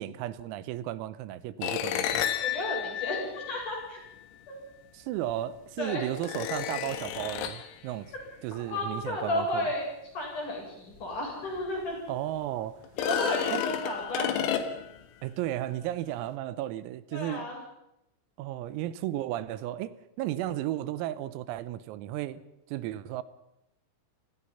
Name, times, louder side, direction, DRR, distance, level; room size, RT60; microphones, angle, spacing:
voice 1, 0.0-2.2 4.9-8.1 8.4-9.7 12.1-12.8 13.5-13.7 15.2-17.5 18.4-22.4 22.7-23.2, right 13 dB, 90° right, 15 dB, 3.7 m, -34 dB
sound 1, 1.6-4.1 5.3-5.4 6.2-7.7 11.0-11.1 11.5-11.6 12.8-15.0, left 10 dB, 85° left, 4.3 m, -31 dB
voice 2, 2.4-4.0 4.5-4.6 5.8-6.0 8.6-9.8 10.1-11.9 13.0-14.3 17.1-17.6, left 1 dB, 35° left, -1 dB, 9.4 m, -32 dB
30.0 x 18.5 x 5.7 m, 0.86 s
omnidirectional pair, 6.0 m